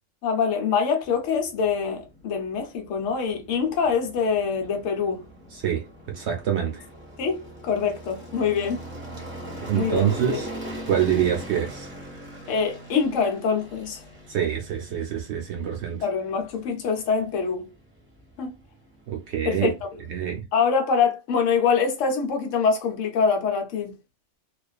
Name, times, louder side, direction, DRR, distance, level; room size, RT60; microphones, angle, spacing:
voice 1, 0.2-5.2 7.2-8.8 9.7-10.4 12.5-14.0 16.0-17.7 18.4-18.5 19.4-19.7 20.5-23.9, left 6 dB, 75° left, 1.1 m, -24 dB
sound 1, 1.0-20.4, equal, 10° right, 0.8 m, -42 dB
voice 2, 5.5-6.8 9.6-10.5 10.8-11.9 14.3-16.0 19.1-19.7 20.1-20.4, right 9 dB, 65° right, 0.8 m, -26 dB
2.4 x 2.4 x 2.3 m
omnidirectional pair, 1.3 m